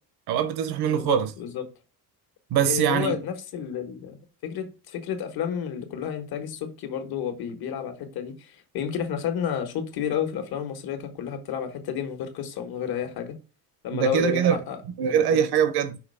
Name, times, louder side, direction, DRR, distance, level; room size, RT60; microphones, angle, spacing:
voice 1, 0.3-1.3 2.5-3.2 13.9-14.6 15.0-16.0, right 8 dB, 70° right, 0.9 m, -23 dB
voice 2, 0.9-1.6 2.5-13.3 13.8-15.4, left 8 dB, 65° left, 1.5 m, -31 dB
5.8 x 3.1 x 5.4 m
cardioid pair, 165°, 39 cm